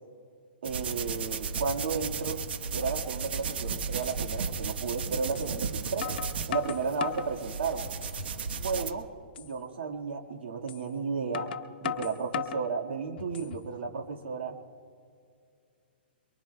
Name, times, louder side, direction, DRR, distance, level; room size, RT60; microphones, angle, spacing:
sound 1, 0.6-8.9, right 5 dB, 70° right, 1.1 m, -34 dB
voice 1, 0.6-2.4 2.7-6.1 6.5-7.8 8.6-9.1 9.4-11.5 11.8-14.6, right 5 dB, 85° right, 1 dB, 1.7 m, -33 dB
sound 2, 3.4-3.5 4.0-4.2 5.4-5.5 6.0-7.3 7.8-8.4 8.8-8.9 9.4-9.5 10.7-10.8 11.3-12.7 13.2-13.7, left 9 dB, 60° left, 0.9 m, -36 dB
23.5 x 23.5 x 2.2 m, 2.3 s
hypercardioid pair, 155°, 6 cm